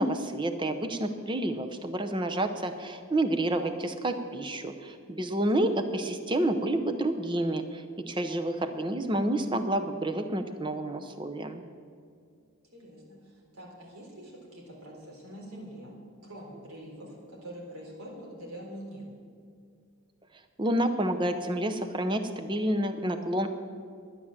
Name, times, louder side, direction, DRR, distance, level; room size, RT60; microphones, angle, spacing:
voice 1, 0.0-11.6 20.6-23.5, right 1 dB, 20° right, 7 dB, 0.8 m, -29 dB
voice 2, 12.7-16.0 16.2-19.1, equal, 85° right, -2 dB, 3.9 m, -45 dB
12.0 x 9.9 x 7.4 m, 2.3 s
head